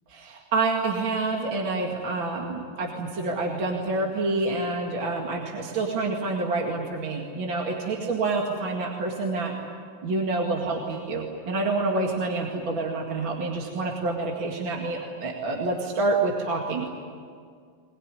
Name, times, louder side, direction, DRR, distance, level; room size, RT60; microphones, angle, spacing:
voice 1, 0.1-9.5 10.0-16.9, right 3 dB, 40° right, 0 dB, 2.5 m, -27 dB
22.0 x 20.5 x 9.9 m, 2.1 s
omnidirectional pair, 3.6 m